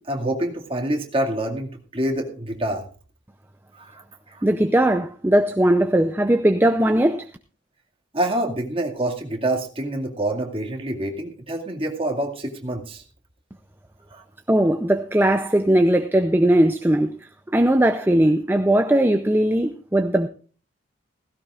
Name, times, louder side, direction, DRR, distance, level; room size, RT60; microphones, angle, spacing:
voice 1, 0.0-2.8 3.7-4.4 8.1-13.0 14.1-14.2, right 1 dB, 30° right, 2.2 m, -27 dB
voice 2, 4.4-7.3 14.5-17.1 17.5-20.3, right 1 dB, 10° right, 0.5 m, -19 dB
16.5 x 16.0 x 2.5 m
head